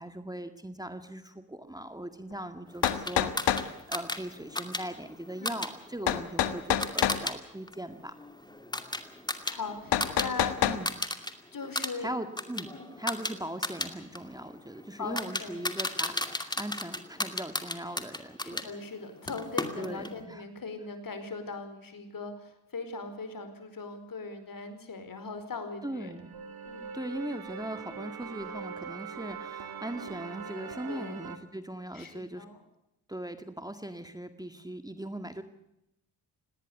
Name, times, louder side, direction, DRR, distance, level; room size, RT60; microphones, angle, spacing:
voice 1, 0.0-8.1 10.6-10.9 12.0-12.7 13.0-18.6 19.8-20.4 25.8-26.3 26.9-32.5 33.1-35.4, right 1 dB, 10° right, 8 dB, 1.9 m, -39 dB
sound 1, 2.3-2.4 2.8-3.7 6.1-7.2 9.9-10.8, left 10 dB, 80° left, 1.6 m, -26 dB
sound 2, 2.8-7.4 7.7-10.3 10.6-11.3 11.6-18.7 19.3-20.2, left 1 dB, 10° left, 2.4 m, -35 dB
voice 2, 9.4-10.7 11.5-12.1 12.7-12.9 15.0-15.6 18.4-26.1 26.6-26.9 30.9-31.2 31.9-32.6, left 4 dB, 55° left, 8 dB, 4.9 m, -40 dB
sound 3, 25.8-31.4, right 6 dB, 60° right, 2.3 m, -42 dB
18.5 x 18.5 x 8.4 m, 0.84 s
cardioid pair, 65°, 41 cm